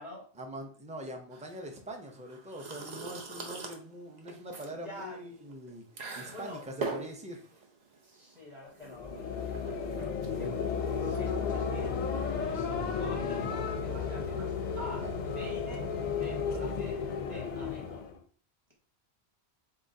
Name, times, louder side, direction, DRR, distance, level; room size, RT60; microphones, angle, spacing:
voice 1, 0.4-7.4 15.0-15.1, right 1 dB, 10° right, 3 dB, 0.5 m, -43 dB
sound 1, 1.3-12.2, right 3 dB, 45° right, 0.7 m, -44 dB
voice 2, 4.7-5.3 6.3-6.6 8.0-10.6 11.0-12.0 12.3-15.0 15.3-18.1, left 1 dB, 30° right, -4 dB, 1.8 m, -46 dB
sound 2, 8.8-18.2, left 5 dB, 55° left, 0.6 m, -33 dB
3.8 x 3.8 x 2.7 m, 0.43 s
omnidirectional pair, 1.1 m